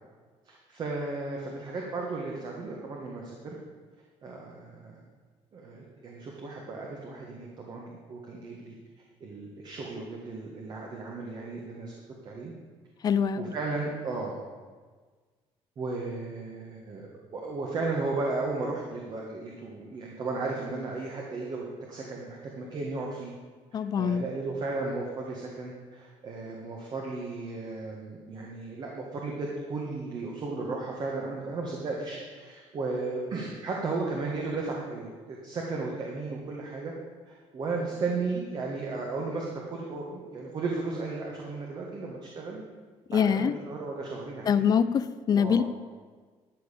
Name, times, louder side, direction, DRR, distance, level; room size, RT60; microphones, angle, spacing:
voice 1, 0.4-3.5 4.2-5.0 5.5-8.7 9.2-11.9 12.2-12.5 13.4-14.4 15.8-17.1 17.3-23.3 23.7-36.9 37.3-42.6 43.1-44.7 45.3-45.6, right 3 dB, 40° right, -1 dB, 1.6 m, -35 dB
voice 2, 13.0-13.5 23.7-24.2 43.1-43.5 44.5-45.6, left 7 dB, 35° left, 14 dB, 0.5 m, -24 dB
12.5 x 5.6 x 6.9 m, 1.5 s
cardioid pair, 140°, 11 cm